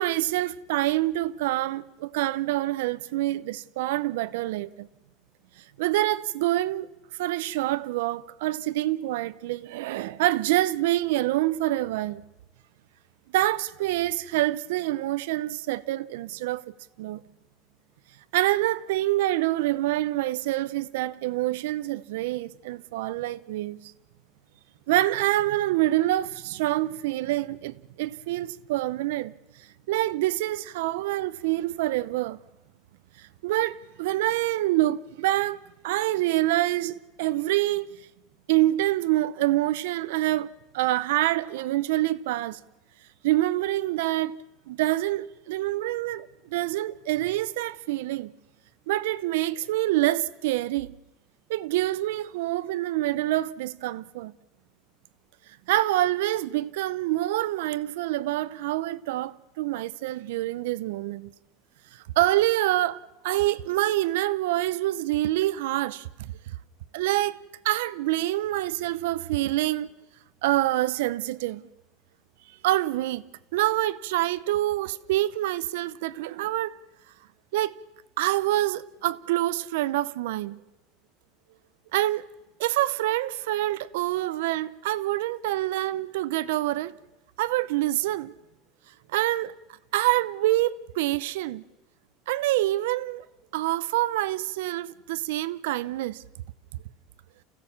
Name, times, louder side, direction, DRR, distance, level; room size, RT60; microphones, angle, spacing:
voice 1, 0.0-4.9 5.6-6.9 7.2-12.2 13.3-17.2 18.3-23.8 24.9-32.4 33.2-35.6 35.8-37.9 38.5-42.6 43.2-44.4 44.7-48.3 48.9-51.0 51.5-54.3 55.7-61.3 61.9-66.3 66.9-69.9 70.4-71.7 72.6-73.2 73.5-76.8 77.5-77.8 78.2-80.6 81.9-82.2 82.6-87.0 87.4-88.3 89.1-89.5 89.9-91.6 92.3-93.3 93.5-96.2, right 16 dB, 85° right, 0.7 m, -26 dB
28.5 x 16.5 x 7.2 m
cardioid pair, 180°, 0 cm